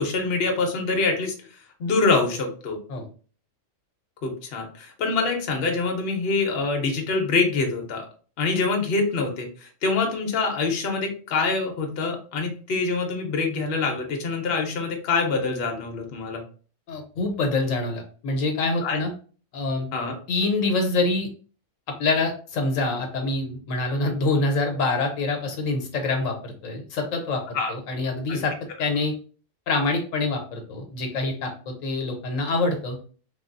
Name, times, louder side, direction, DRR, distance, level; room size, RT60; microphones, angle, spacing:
voice 1, 0.0-1.3 1.8-2.8 4.2-8.1 8.4-16.4 18.8-19.0 19.9-20.1 27.5-27.7 28.3-28.4, left 4 dB, 55° left, 2 dB, 0.8 m, -25 dB
voice 2, 16.9-19.1 19.5-19.9 20.3-21.3 22.0-28.5 28.8-29.1 29.7-33.0, left 3 dB, 80° left, 4 dB, 1.1 m, -25 dB
3.3 x 2.3 x 2.5 m, 0.40 s
omnidirectional pair, 1.3 m